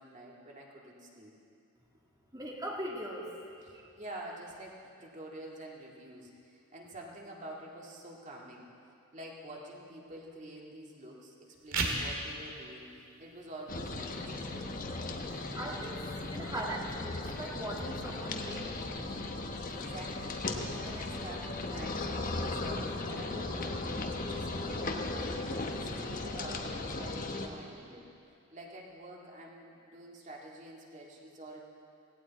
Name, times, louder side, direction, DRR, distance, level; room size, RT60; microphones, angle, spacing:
voice 1, 0.0-1.3 3.6-14.6 19.4-24.9 25.3-28.1 28.5-31.6, right 1 dB, 35° right, -2 dB, 2.1 m, -48 dB
voice 2, 2.3-3.5 3.7-3.9 15.6-18.8, right 1 dB, 20° right, -2 dB, 1.7 m, -40 dB
sound 1, 11.5-22.5, right 2 dB, 80° right, 2.0 m, -43 dB
sound 2, 13.7-27.5, left 2 dB, 40° left, 1.1 m, -37 dB
17.5 x 17.0 x 4.2 m, 2.6 s
head